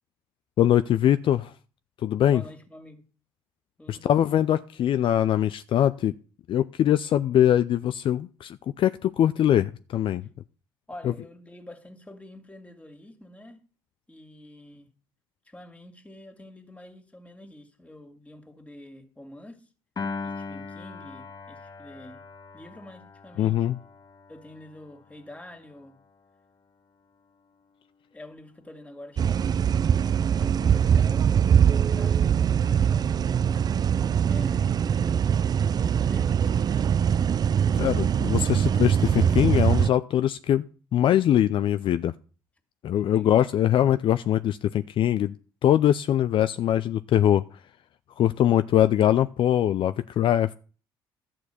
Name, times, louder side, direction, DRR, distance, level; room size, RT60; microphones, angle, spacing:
voice 1, 0.6-1.5 2.0-2.4 3.9-6.1 6.5-10.2 23.4-23.8 37.7-40.7 40.9-42.1 42.8-45.3 45.6-47.4 48.2-50.5, left 11 dB, 55° left, 0.5 m, -22 dB
voice 2, 2.3-3.0 3.8-4.0 10.9-13.6 14.1-14.9 15.5-19.7 20.2-22.2 22.5-23.7 24.3-26.0 28.1-33.4 34.3-35.1 35.7-36.7 43.1-43.5, left 1 dB, 15° left, 2.4 m, -46 dB
Piano, 20.0-26.3, left 4 dB, 40° left, 1.5 m, -40 dB
sound 1, 29.2-39.9, right 8 dB, 40° right, 0.4 m, -22 dB
11.5 x 4.5 x 8.3 m
hypercardioid pair, 60°, 10 cm